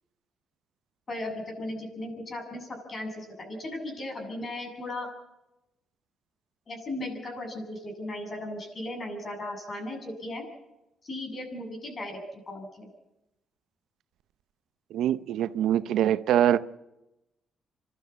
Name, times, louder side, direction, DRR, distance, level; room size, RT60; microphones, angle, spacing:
voice 1, 1.1-5.1 6.7-10.5 11.0-12.9, left 1 dB, 40° left, 8.0 m, -36 dB
voice 2, 14.9-16.6, right 11 dB, 80° right, 0.7 m, -24 dB
27.5 x 12.5 x 8.5 m
cardioid pair, 90°, 0 cm